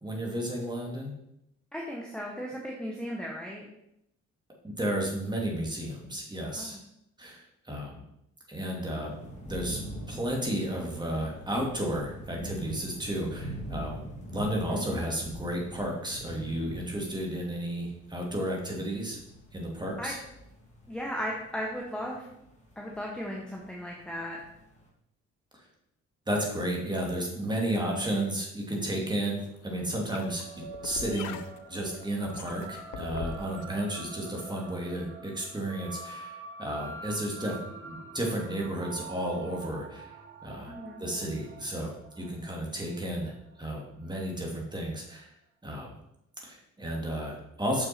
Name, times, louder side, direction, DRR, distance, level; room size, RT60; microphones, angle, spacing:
voice 1, 0.0-1.1 4.6-6.8 7.2-8.0 8.5-9.2 9.5-9.8 10.1-14.0 14.3-19.2 19.5-20.2 26.3-30.4 30.8-31.4 31.7-37.6 37.8-40.2 40.4-40.7 41.0-43.3 43.6-45.3 45.6-45.9 46.4-47.9, right 1 dB, 15° right, -1 dB, 2.4 m, -32 dB
voice 2, 1.7-3.6 6.6-6.8 14.7-15.0 20.0-20.1 20.9-22.3 22.8-24.4 40.7-41.0, equal, 5° left, -2 dB, 1.3 m, -36 dB
sound 1, 9.0-24.9, equal, 25° left, 2.2 m, -44 dB
sound 2, 29.2-33.6, left 8 dB, 75° left, 0.6 m, -43 dB
sound 3, 29.8-44.5, right 4 dB, 40° right, 1.4 m, -46 dB
6.5 x 6.1 x 4.4 m, 0.80 s
cardioid pair, 90°, 30 cm